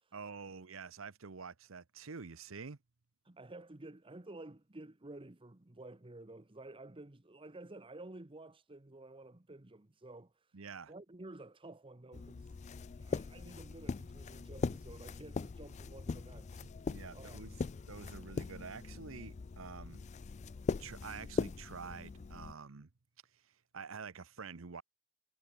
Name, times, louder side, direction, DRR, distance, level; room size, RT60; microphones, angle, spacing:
voice 1, 0.1-2.8 10.5-10.9 16.9-17.5 17.9-20.0 20.8-22.9 23.7-24.8, right 5 dB, 80° right, 0.9 m, -47 dB
voice 2, 3.2-10.6 10.9-12.6 13.0-16.7 17.1-17.6, right 2 dB, 25° right, 1.0 m, -52 dB
sound 1, 12.1-22.5, left 4 dB, 35° left, 0.4 m, -41 dB
head